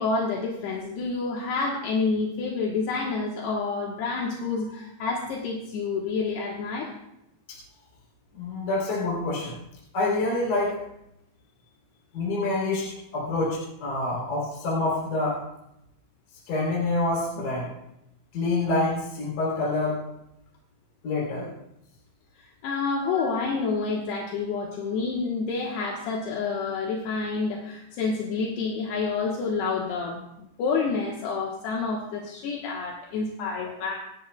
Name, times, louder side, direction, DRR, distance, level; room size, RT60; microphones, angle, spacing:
voice 1, 0.0-6.9 22.6-33.9, left 4 dB, 75° left, -2 dB, 3.3 m, -28 dB
voice 2, 8.3-9.5 9.9-10.8 12.1-15.4 16.5-17.7 18.3-20.0 21.0-21.5 23.1-23.2, left 2 dB, 50° left, -5 dB, 4.9 m, -27 dB
28.0 x 10.5 x 2.3 m, 0.82 s
omnidirectional pair, 4.9 m